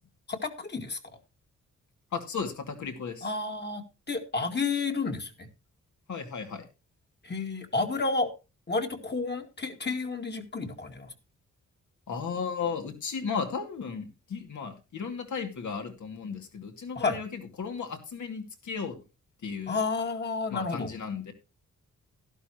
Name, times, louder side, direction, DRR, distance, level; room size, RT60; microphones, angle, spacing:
voice 1, 0.3-1.0 3.2-5.5 7.2-8.3 8.7-11.1 17.0-17.2 19.7-20.9, left 4 dB, 35° left, 4 dB, 2.1 m, -31 dB
voice 2, 2.1-3.3 6.1-6.7 12.1-19.0 19.4-19.8 20.5-21.3, left 5 dB, 70° left, 5 dB, 2.5 m, -35 dB
12.0 x 12.0 x 3.1 m, 0.28 s
cardioid pair, 75°, 31 cm